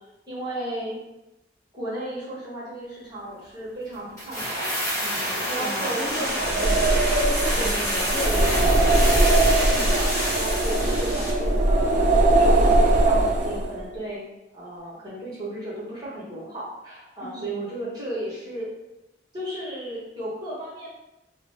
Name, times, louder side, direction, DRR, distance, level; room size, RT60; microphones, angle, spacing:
voice 1, 0.3-1.0 1.7-4.6 5.0-6.2 7.6-7.9 9.6-14.2 14.5-18.7 19.3-20.9, right 1 dB, 20° right, -8 dB, 1.1 m, -34 dB
sound 1, 4.2-11.5 11.7-11.8, equal, 15° left, 1.3 m, -28 dB
voice 2, 5.6-9.1 17.2-17.7, equal, 45° left, -3 dB, 0.9 m, -34 dB
sound 2, 6.3-13.9, right 2 dB, 40° right, 0.4 m, -20 dB
4.8 x 2.0 x 3.2 m, 0.93 s
head